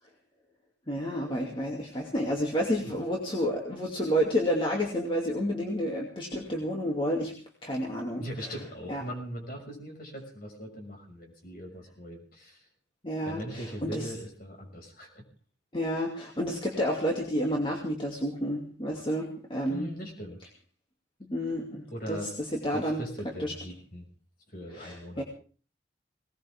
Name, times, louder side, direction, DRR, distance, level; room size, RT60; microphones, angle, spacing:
voice 1, 0.9-7.3 7.6-8.5 8.9-9.0 13.0-14.1 15.7-19.9 21.3-23.0 23.4-23.5 24.7-25.2, equal, 25° left, -1 dB, 2.6 m, -30 dB
voice 2, 8.2-12.7 13.2-15.2 19.7-20.4 21.9-22.3 22.7-24.1 24.5-25.2, equal, 50° left, 2 dB, 6.2 m, -40 dB
20.0 x 19.0 x 3.6 m, 0.41 s
head